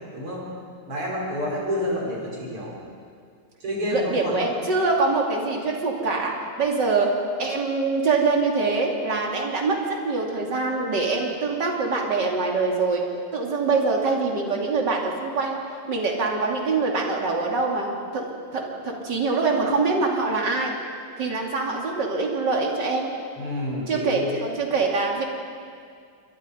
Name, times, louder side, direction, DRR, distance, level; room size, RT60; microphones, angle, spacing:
voice 1, 0.1-0.5 0.9-2.7 3.6-4.4 23.4-24.5, left 1 dB, 80° right, -4 dB, 6.9 m, -29 dB
voice 2, 3.9-6.3 6.6-7.1 7.4-9.8 10.0-13.0 13.3-15.6 15.9-18.3 18.5-20.7 21.2-23.1 23.9-25.2, right 4 dB, 50° right, 0 dB, 3.4 m, -24 dB
28.5 x 23.0 x 5.3 m, 2.2 s
omnidirectional pair, 2.4 m